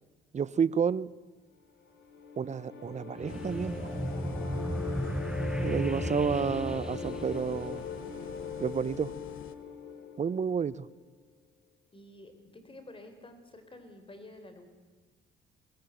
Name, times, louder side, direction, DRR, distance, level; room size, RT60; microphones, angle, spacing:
voice 1, 0.3-1.1 2.4-3.7 5.6-7.8 8.6-9.1 10.2-10.9, right 7 dB, 35° right, 20 dB, 0.7 m, -30 dB
sound 1, 1.8-10.9, left 6 dB, 65° left, 3.9 m, -40 dB
sound 2, 3.2-8.1, right 1 dB, 5° right, 1.3 m, -35 dB
sound 3, 3.3-9.6, left 10 dB, 90° left, 1.2 m, -48 dB
voice 2, 11.9-14.7, left 1 dB, 25° left, 8 dB, 4.1 m, -50 dB
19.5 x 18.0 x 9.1 m, 1.3 s
cardioid pair, 90°, 20 cm